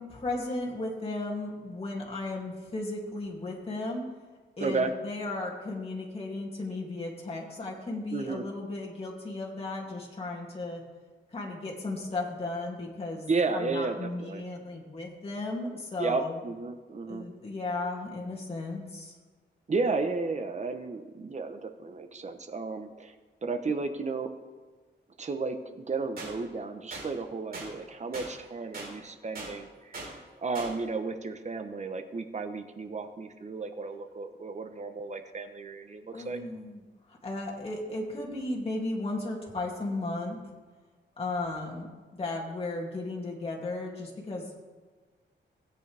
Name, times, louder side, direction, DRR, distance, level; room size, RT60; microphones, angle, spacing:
voice 1, 0.0-4.0 4.6-10.8 11.3-16.4 17.1-19.1 36.1-36.8 37.1-40.4 41.2-44.5, left 2 dB, 30° left, -3 dB, 2.5 m, -35 dB
voice 2, 4.6-4.9 8.1-8.4 13.3-14.4 16.0-17.3 19.7-23.1 23.4-24.3 25.2-36.4, right 4 dB, 40° right, 7 dB, 0.9 m, -33 dB
sound 1, 26.2-26.3 26.9-27.1 27.5-27.7 28.1-28.3 28.7-28.9 29.4-29.5 29.9-30.1 30.6-30.7, right 3 dB, 55° right, 4.1 m, -39 dB
16.0 x 9.2 x 3.4 m, 1.4 s
wide cardioid pair, 120°, 19 cm